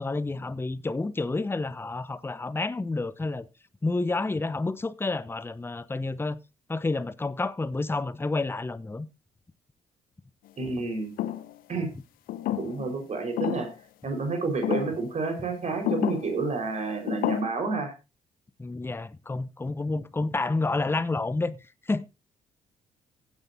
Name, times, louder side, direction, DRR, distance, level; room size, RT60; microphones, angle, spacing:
voice 1, 0.0-3.5 3.8-6.4 6.7-9.1 18.6-21.6 21.9-22.1, left 3 dB, 15° left, 0.7 m, -29 dB
voice 2, 10.6-11.1 11.7-11.9 12.6-13.7 14.0-17.9, right 3 dB, 45° right, 4.8 m, -29 dB
sound 1, 11.2-11.5 12.3-12.9 13.4-13.7 14.6-15.0 15.8-16.3 17.1-17.4, left 13 dB, 60° left, 0.8 m, -29 dB
15.5 x 9.9 x 2.7 m
figure-of-eight pair, 45°, 17 cm